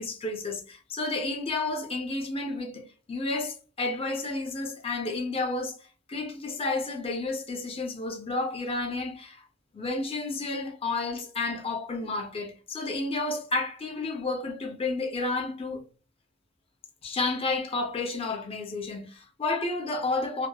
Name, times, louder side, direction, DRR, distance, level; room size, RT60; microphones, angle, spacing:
voice 1, 0.0-5.8 6.1-9.4 9.7-15.8 17.0-20.5, left 3 dB, 25° left, 0.5 m, -31 dB
2.8 x 2.0 x 2.2 m
head